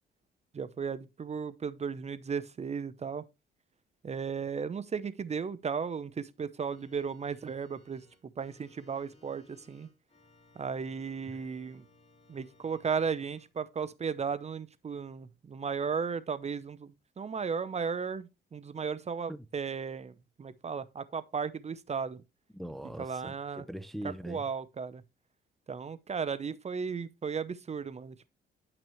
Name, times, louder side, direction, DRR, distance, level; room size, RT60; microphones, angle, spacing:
voice 1, 0.5-3.2 4.0-8.0 8.4-9.9 10.6-11.9 12.3-22.2 23.0-23.6 24.3-25.0 25.7-28.3, right 6 dB, 35° right, 0.7 m, -35 dB
Organ, 6.6-13.5, left 2 dB, 30° left, 3.9 m, -63 dB
voice 2, 22.5-24.4, equal, ahead, 0.6 m, -42 dB
10.5 x 6.0 x 3.1 m
cardioid pair, 90°, 20 cm